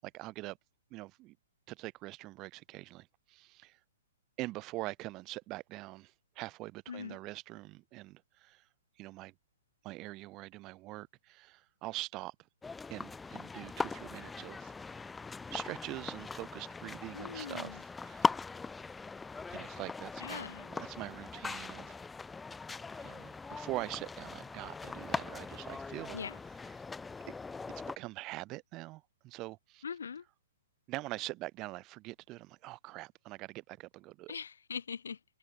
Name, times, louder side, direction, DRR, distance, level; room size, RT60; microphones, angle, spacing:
voice 1, 0.0-0.6 0.9-1.4 1.7-3.8 4.4-8.6 9.0-9.3 9.8-12.4 12.9-15.1 15.5-18.3 19.5-22.0 23.0-26.2 26.5-26.8 27.7-29.8 30.9-34.4, right 19 dB, 30° right, 5.6 m, -44 dB
voice 2, 6.9-7.2 17.1-17.8 20.2-20.7 26.1-26.4 29.8-30.2 34.3-35.4, left 6 dB, 75° left, 3.5 m, -42 dB
sound 1, 12.6-28.0, left 4 dB, 10° left, 1.5 m, -40 dB
figure-of-eight pair, 120°, 0 cm